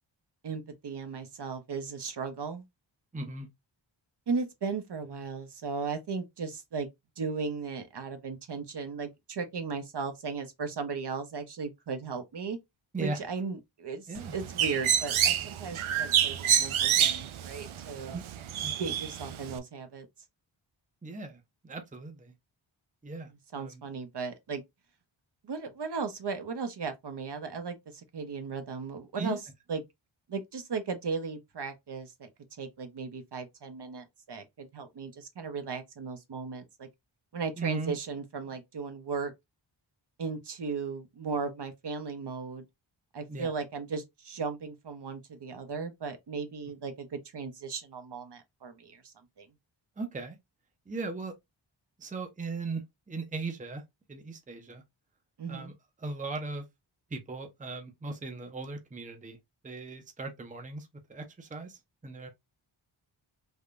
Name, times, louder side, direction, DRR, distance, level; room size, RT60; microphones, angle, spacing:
voice 1, 0.4-2.6 4.3-6.9 7.2-12.6 13.0-18.2 18.8-20.1 23.3-24.6 25.4-29.4 29.7-29.8 30.3-32.3 32.6-36.9 37.3-39.3 40.2-42.6 43.1-49.5 55.4-55.7, right 5 dB, 55° right, 0.8 m, -36 dB
voice 2, 3.1-3.5 12.9-13.2 14.1-14.3 18.1-18.2 18.6-18.7 21.0-22.3 23.0-23.8 29.2-29.4 37.6-37.9 43.3-43.5 50.0-50.4 50.9-51.3 52.0-52.8 53.1-53.8 54.1-54.8 55.5-55.7 56.0-56.6 57.1-59.4 59.6-61.8 62.0-62.3, right 3 dB, 15° right, 0.6 m, -37 dB
Bird, 14.2-19.6, right 9 dB, 85° right, 0.6 m, -28 dB
3.6 x 2.2 x 2.5 m
wide cardioid pair, 70°, 48 cm